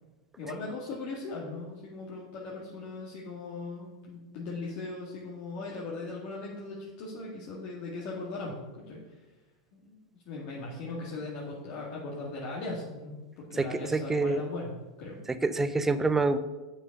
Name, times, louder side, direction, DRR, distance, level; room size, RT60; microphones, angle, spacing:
voice 1, 0.4-8.5 8.9-9.0 9.7-10.0 10.3-14.7 15.0-15.2, left 3 dB, 50° left, -4 dB, 2.0 m, -38 dB
voice 2, 13.6-14.4 15.3-16.4, right 3 dB, 10° right, 12 dB, 0.6 m, -27 dB
8.0 x 6.2 x 5.3 m, 1.2 s
hypercardioid pair, 120°, 3 cm